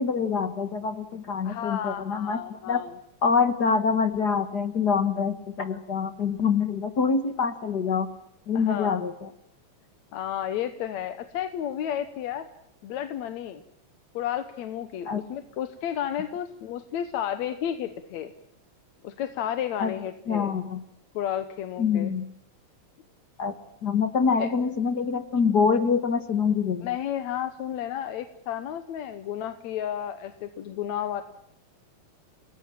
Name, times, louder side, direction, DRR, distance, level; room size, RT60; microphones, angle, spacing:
voice 1, 0.0-2.8 3.2-8.1 8.5-9.3 15.1-15.2 19.8-19.9 20.3-20.8 21.8-22.2 23.4-23.5 23.8-26.9, left 5 dB, 45° left, 9 dB, 1.5 m, -25 dB
voice 2, 1.5-3.0 8.5-9.0 10.1-12.5 12.8-13.6 14.1-18.3 19.0-20.6 21.1-22.1 24.4-24.5 26.8-31.2, left 10 dB, 75° left, 9 dB, 2.3 m, -32 dB
29.5 x 19.5 x 7.6 m, 0.76 s
omnidirectional pair, 3.3 m